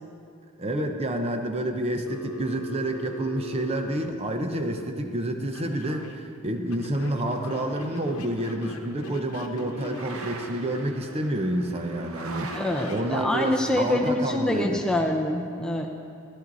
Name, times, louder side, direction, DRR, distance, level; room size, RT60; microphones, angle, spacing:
voice 1, 0.6-12.6 12.9-14.8, right 1 dB, 30° right, 5 dB, 0.7 m, -29 dB
Telephone, 2.1-4.8 5.5-6.2 6.7-10.4 12.5-13.1, left 1 dB, 85° left, 0.9 m, -40 dB
sound 1, 6.8-13.8, right 3 dB, 80° right, 0.9 m, -42 dB
voice 2, 12.5-15.9, left 1 dB, 5° left, 1 dB, 0.6 m, -25 dB
14.0 x 11.0 x 4.1 m, 2.4 s
head